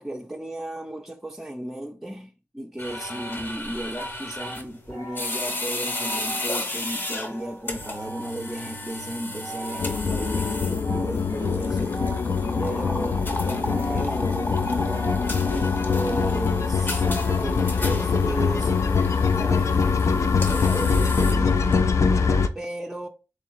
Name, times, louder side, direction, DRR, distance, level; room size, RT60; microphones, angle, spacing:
voice 1, 0.0-11.9 12.6-15.2 15.5-18.7 19.3-21.8 22.5-23.1, right 1 dB, 5° right, 0.5 m, -35 dB
sound 1, 2.8-13.2 13.6-14.4 14.7-15.5 15.9-17.5 18.3-19.7, right 1 dB, 85° left, 1.5 m, -40 dB
sound 2, 2.8-21.8, left 1 dB, 40° left, 0.8 m, -34 dB
sound 3, 9.8-22.5, left 5 dB, 65° left, 0.4 m, -23 dB
3.7 x 3.1 x 3.0 m
cardioid pair, 55°, 5 cm